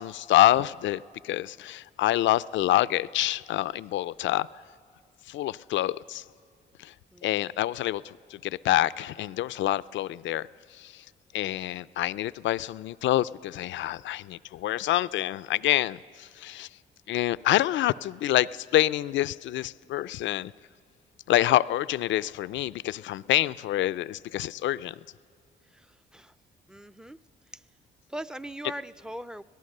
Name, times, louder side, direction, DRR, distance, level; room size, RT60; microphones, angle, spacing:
voice 1, 0.0-4.5 5.3-6.2 6.8-6.9 7.2-10.5 10.7-11.0 11.3-16.7 17.1-20.5 21.3-25.0, left 14 dB, 70° left, 0.4 m, -27 dB
voice 2, 25.7-26.3 26.7-27.2 27.5-27.6 28.1-29.4, right 1 dB, 5° right, 0.4 m, -40 dB
25.0 x 18.0 x 6.6 m
cardioid pair, 90°, 20 cm